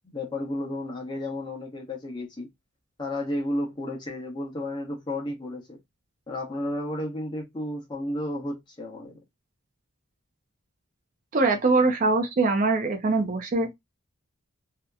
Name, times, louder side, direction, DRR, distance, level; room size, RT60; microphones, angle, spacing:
voice 1, 0.0-2.5 3.0-5.8 6.3-9.2, left 1 dB, 20° left, 0.9 m, -32 dB
voice 2, 11.3-13.7, right 3 dB, 35° right, 0.4 m, -22 dB
2.7 x 2.1 x 2.3 m
head